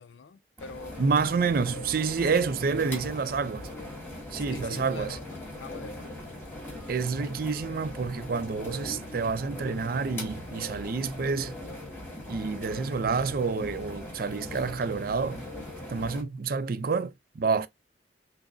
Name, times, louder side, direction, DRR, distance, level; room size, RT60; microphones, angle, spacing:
voice 1, 0.0-1.0 2.3-2.4 4.4-5.2 5.6-6.4, left 4 dB, 90° left, 0.4 m, -43 dB
sound 1, 0.6-16.2, left 1 dB, 15° left, 1.5 m, -40 dB
voice 2, 1.0-3.7 4.3-5.2 6.9-11.6 12.3-15.5 15.9-17.7, right 5 dB, 55° right, 0.4 m, -28 dB
5.8 x 2.0 x 2.5 m
head